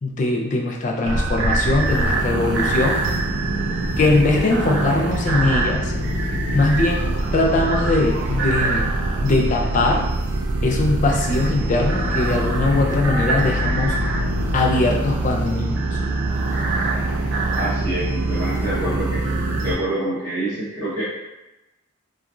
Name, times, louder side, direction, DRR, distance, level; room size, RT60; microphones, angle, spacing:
voice 1, 0.0-3.0 4.0-5.9 6.5-8.9 9.2-10.1 10.6-14.0 14.5-15.8, left 2 dB, 35° left, 0 dB, 0.3 m, -21 dB
sound 1, 1.0-19.8, right 2 dB, 65° right, 0.4 m, -23 dB
voice 2, 17.5-19.3 19.6-21.0, right 1 dB, 20° right, -11 dB, 0.9 m, -26 dB
2.9 x 2.3 x 2.4 m, 0.96 s
head